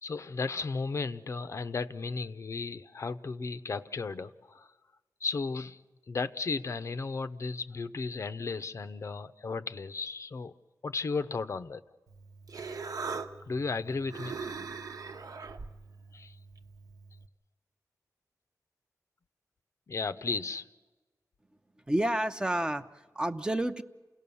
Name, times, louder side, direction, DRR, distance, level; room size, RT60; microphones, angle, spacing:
voice 1, 0.0-4.7 5.2-5.8 6.1-10.5 10.8-11.8 13.5-14.6 16.1-16.3 19.9-20.7, left 4 dB, 50° left, 12 dB, 0.6 m, -34 dB
Human voice, 12.1-17.3, right 4 dB, 70° right, 1.1 m, -41 dB
voice 2, 21.9-23.8, right 1 dB, 15° right, 9 dB, 0.7 m, -30 dB
28.5 x 17.5 x 7.0 m, 1.2 s
wide cardioid pair, 160°, 6 cm